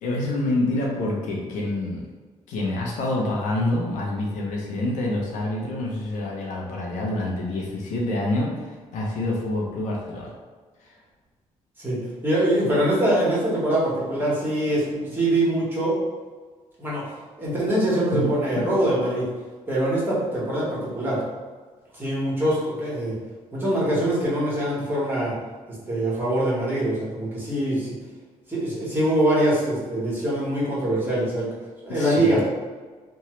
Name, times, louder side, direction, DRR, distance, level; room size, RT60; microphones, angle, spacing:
voice 1, 0.0-2.1 2.5-10.4 10.8-11.0 18.1-18.7 31.9-32.4, left 1 dB, 85° left, -2 dB, 0.7 m, -27 dB
voice 2, 11.8-16.0 16.8-17.0 17.4-19.3 19.7-21.2 21.9-23.1 23.5-25.3 25.9-27.9 28.5-31.5 31.8-32.4, right 1 dB, 15° right, -7 dB, 1.3 m, -23 dB
3.0 x 2.2 x 3.1 m, 1.4 s
cardioid pair, 95°, 12 cm